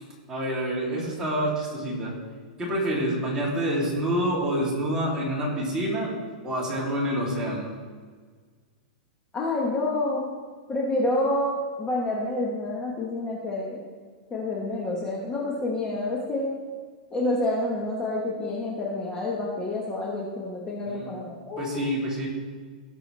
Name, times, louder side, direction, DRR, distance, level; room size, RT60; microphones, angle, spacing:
voice 1, 0.0-2.1 2.6-6.1 6.4-7.7 20.8-21.2 21.6-22.3, right 1 dB, 15° right, -6 dB, 3.1 m, -27 dB
voice 2, 9.3-10.3 10.7-13.9 14.3-16.5 17.1-21.8, left 2 dB, 15° left, -4 dB, 1.4 m, -28 dB
18.0 x 6.1 x 3.4 m, 1.5 s
supercardioid pair, 150°, 5 cm